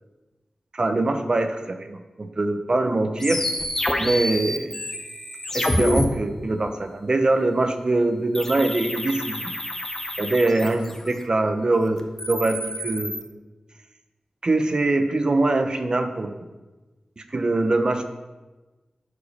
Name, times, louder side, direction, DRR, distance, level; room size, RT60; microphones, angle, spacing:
voice 1, 0.7-3.4 4.0-4.8 5.5-9.5 10.2-13.2 14.4-16.4 17.2-18.0, right 2 dB, 40° right, 7 dB, 0.8 m, -23 dB
sound 1, 3.2-6.0 8.3-11.2 12.0-13.2, left 1 dB, 20° left, 1.0 m, -27 dB
11.0 x 5.0 x 5.3 m, 1.2 s
wide cardioid pair, 85°, 2 cm